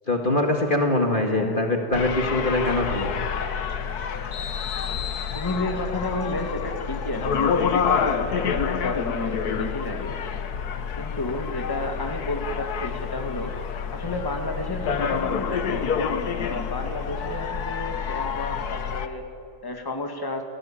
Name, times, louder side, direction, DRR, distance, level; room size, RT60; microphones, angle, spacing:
voice 1, 0.1-3.1, left 2 dB, 30° left, 2 dB, 2.1 m, -23 dB
voice 2, 1.1-1.6 5.3-10.2 11.0-13.6 13.9-15.9 16.3-19.2 19.6-20.4, left 1 dB, 15° left, 4 dB, 2.1 m, -32 dB
sound 1, 1.9-19.1, left 6 dB, 65° left, 1.6 m, -28 dB
28.5 x 19.0 x 8.8 m, 2.7 s
omnidirectional pair, 1.8 m